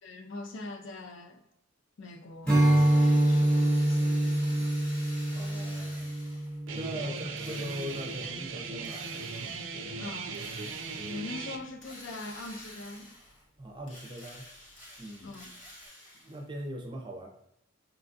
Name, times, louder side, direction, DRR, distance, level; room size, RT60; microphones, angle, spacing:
voice 1, 0.0-1.4 2.0-4.8 7.0-7.2 10.0-10.4 11.0-13.1 15.2-15.5, left 2 dB, 60° left, 0.5 m, -43 dB
Strum, 2.4-7.9, right 1 dB, 5° left, 1.0 m, -26 dB
Drill, 2.5-6.6 7.4-8.3 8.8-9.7 10.3-11.2 11.8-13.4 13.8-16.4, left 1 dB, 35° left, 0.9 m, -49 dB
voice 2, 5.3-6.1 6.7-9.1 13.6-14.5 15.0-15.4 16.2-17.3, right 1 dB, 20° right, 0.6 m, -40 dB
Guitar, 6.7-11.6, right 4 dB, 65° right, 0.4 m, -38 dB
5.4 x 2.3 x 2.6 m
head